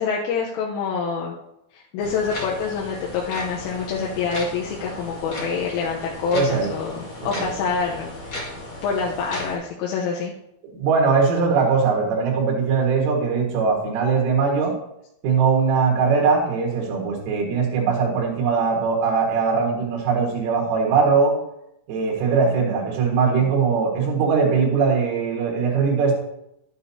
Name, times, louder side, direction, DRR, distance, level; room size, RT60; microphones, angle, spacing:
voice 1, 0.0-1.3 1.7-8.5 8.8-10.3, left 5 dB, 85° left, -4 dB, 3.5 m, -26 dB
sound 1, 2.0-9.6, left 1 dB, 45° left, 1.8 m, -36 dB
voice 2, 6.3-6.7 7.3-7.5 10.7-14.7 15.2-21.3 21.9-26.2, right 5 dB, 90° right, -2 dB, 4.4 m, -20 dB
11.5 x 10.0 x 2.8 m, 0.83 s
omnidirectional pair, 5.6 m